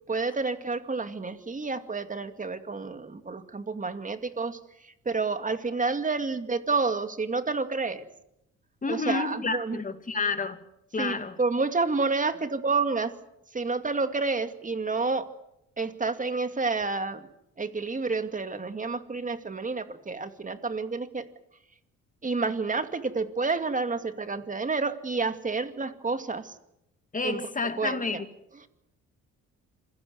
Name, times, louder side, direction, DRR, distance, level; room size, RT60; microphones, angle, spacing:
voice 1, 0.1-8.1 8.9-9.8 11.0-13.1 13.5-15.3 15.8-17.2 17.6-21.3 22.2-26.5 27.2-27.4 27.8-28.2, right 4 dB, 25° right, 2.3 m, -29 dB
voice 2, 8.8-10.6 10.9-11.4 27.1-28.3, left 4 dB, 25° left, 2.5 m, -30 dB
26.5 x 17.0 x 9.5 m
cardioid pair, 90°, 30 cm